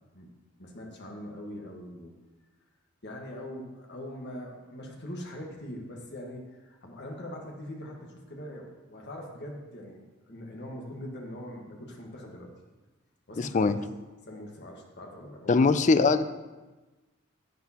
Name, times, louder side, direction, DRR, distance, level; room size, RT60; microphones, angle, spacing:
voice 1, 0.6-2.1 3.0-12.5 13.3-13.7 14.2-15.7, left 1 dB, 55° left, 0 dB, 1.6 m, -42 dB
voice 2, 13.4-13.8 15.5-16.3, left 4 dB, 35° left, 12 dB, 0.4 m, -22 dB
10.5 x 9.5 x 2.9 m, 1.2 s
head